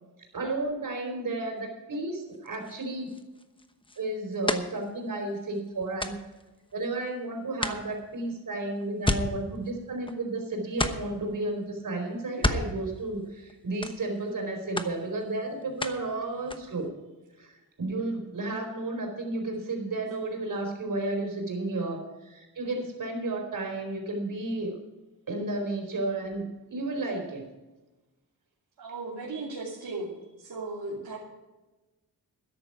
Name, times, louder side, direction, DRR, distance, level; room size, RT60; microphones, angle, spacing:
voice 1, 0.3-3.2 4.0-6.1 6.7-16.9 17.4-24.8 25.3-27.4, right 2 dB, 60° right, 2 dB, 4.4 m, -32 dB
sound 1, 2.3-7.2 7.6-10.4 10.7-11.3 12.2-13.5 13.8-14.4 14.8-16.1 16.4-16.9, left 2 dB, 15° left, 1.0 m, -34 dB
voice 2, 28.8-30.1 30.4-31.2, right 3 dB, 80° right, -5 dB, 2.8 m, -36 dB
13.5 x 11.0 x 4.9 m, 1.1 s
wide cardioid pair, 105°, 37 cm